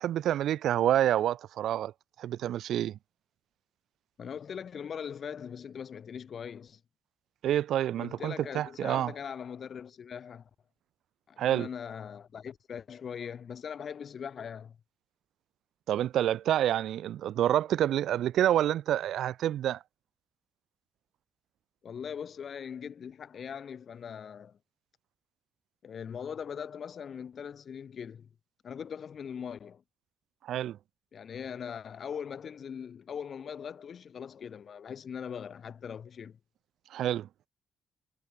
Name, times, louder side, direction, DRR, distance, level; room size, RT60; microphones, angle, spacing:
voice 1, 0.0-1.9 2.2-3.0 7.4-9.1 11.4-11.7 15.9-19.8 30.4-30.8 36.9-37.3, right 11 dB, 75° right, 0.5 m, -28 dB
voice 2, 4.2-6.8 8.0-10.5 11.3-14.8 21.8-24.6 25.8-28.3 28.6-29.8 31.1-36.4, left 7 dB, 50° left, 1.4 m, -41 dB
cardioid pair, 90°, 0 cm